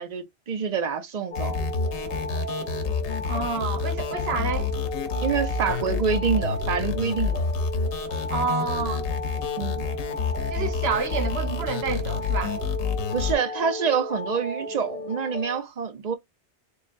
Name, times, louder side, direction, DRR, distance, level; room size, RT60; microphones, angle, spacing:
voice 1, 0.0-1.6 5.2-7.5 9.6-9.8 13.1-16.1, right 6 dB, 50° right, 0.5 m, -27 dB
sound 1, 1.3-13.3, left 5 dB, 80° left, 1.0 m, -29 dB
sound 2, 1.3-15.6, left 2 dB, 55° left, 1.0 m, -35 dB
voice 2, 3.2-4.7 8.3-9.1 10.5-12.6, right 5 dB, 70° right, 1.0 m, -29 dB
3.7 x 3.1 x 2.5 m
omnidirectional pair, 1.1 m